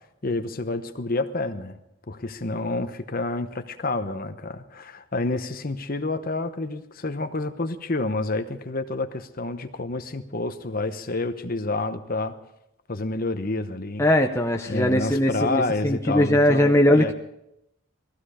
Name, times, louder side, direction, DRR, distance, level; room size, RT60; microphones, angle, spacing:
voice 1, 0.2-1.8 2.1-12.4 12.9-14.0 14.7-17.1, left 2 dB, 40° left, 9 dB, 0.9 m, -29 dB
voice 2, 14.0-17.1, left 1 dB, 10° left, 2 dB, 0.7 m, -20 dB
19.0 x 15.0 x 5.0 m, 0.82 s
head